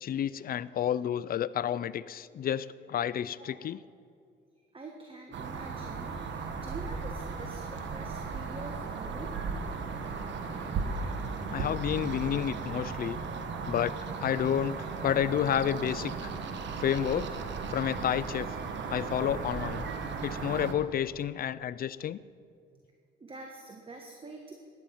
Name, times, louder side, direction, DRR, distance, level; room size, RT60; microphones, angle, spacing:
voice 1, 0.0-3.8 11.5-13.2 13.7-16.3 16.8-17.3 17.7-18.5 18.9-19.8 20.2-22.2, left 10 dB, 50° left, 17 dB, 0.5 m, -30 dB
voice 2, 3.4-3.7 4.7-9.4 23.2-24.5, right 3 dB, 25° right, 2 dB, 1.4 m, -46 dB
sound 1, 5.3-20.7, right 4 dB, 65° right, 1.4 m, -36 dB
14.5 x 10.5 x 5.7 m, 2.3 s
cardioid pair, 90°, 20 cm